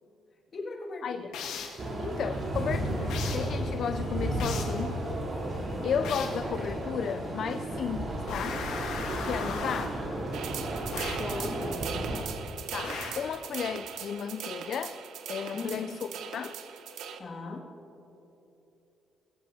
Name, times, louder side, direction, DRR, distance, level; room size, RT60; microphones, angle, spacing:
voice 1, 0.5-1.4 9.2-9.6 11.0-12.4 15.5-15.8 17.2-17.7, left 2 dB, 45° left, -1 dB, 2.1 m, -39 dB
sound 1, 1.3-1.9 3.1-3.5 4.4-4.8 6.0-6.5 8.3-10.0 10.9-11.3 12.8-13.3, left 5 dB, 90° left, 1.7 m, -37 dB
sound 2, 1.8-12.2, right 1 dB, 50° right, 3.3 m, -33 dB
voice 2, 2.0-5.0 5.8-8.6 9.2-10.0 12.7-15.0 15.3-16.0 16.3-16.6, left 7 dB, 65° left, 9 dB, 0.4 m, -34 dB
sound 3, 10.3-17.2, right 7 dB, 80° right, 0.8 m, -39 dB
19.5 x 17.0 x 2.8 m, 3.0 s
cardioid pair, 90°, 0 cm